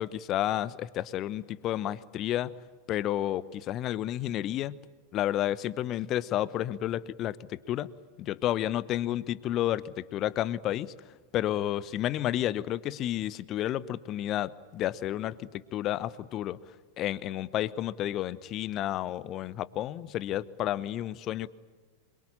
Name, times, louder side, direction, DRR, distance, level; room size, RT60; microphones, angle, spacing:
voice 1, 0.0-2.5 2.9-4.8 5.1-7.9 8.2-10.9 11.3-16.6 17.0-21.5, left 13 dB, 35° left, 18 dB, 1.0 m, -31 dB
27.0 x 23.5 x 8.8 m, 1.3 s
figure-of-eight pair, 90°, 0 cm